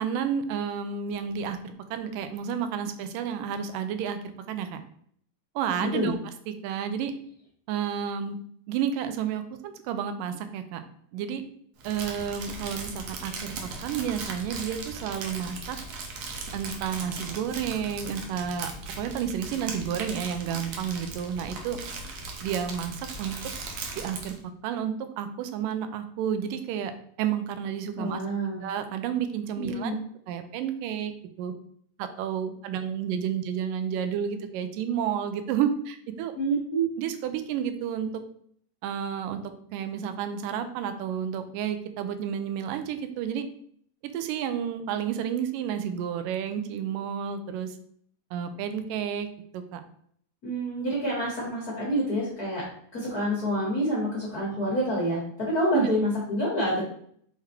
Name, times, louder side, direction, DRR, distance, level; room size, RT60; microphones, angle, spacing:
voice 1, 0.0-4.7 5.6-7.1 7.7-8.4 8.7-10.8 11.1-11.4 11.8-15.8 16.5-18.7 19.0-21.8 22.4-23.4 24.0-24.4 24.6-26.9 27.2-28.2 28.6-30.0 30.3-31.1 31.4-31.5 32.0-36.3 37.0-38.1 38.8-39.4 39.7-43.5 44.0-47.8 48.3-49.8 55.7-55.9, right 8 dB, 85° right, 9 dB, 2.2 m, -31 dB
Crumpling crinkling, 11.8-24.4, right 3 dB, 70° right, 1.6 m, -38 dB
voice 2, 28.0-28.6 29.6-30.0 36.3-36.8 50.4-52.6 52.9-56.8, right 1 dB, 40° left, -5 dB, 1.5 m, -27 dB
5.9 x 3.9 x 4.3 m, 0.62 s
omnidirectional pair, 3.8 m